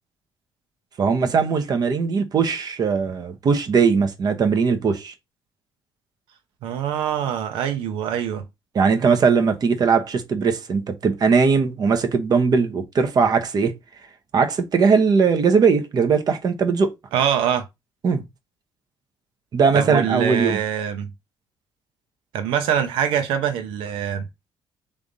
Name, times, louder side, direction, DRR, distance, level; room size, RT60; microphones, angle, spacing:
voice 1, 1.0-5.1 8.7-13.8 14.3-16.9 18.0-18.2 19.5-20.6, right 5 dB, 50° right, 1.1 m, -19 dB
voice 2, 6.6-8.5 17.1-17.7 19.7-21.1 22.3-24.3, right 8 dB, 90° right, 0.9 m, -24 dB
3.7 x 3.5 x 4.0 m
cardioid pair, 85°, 9 cm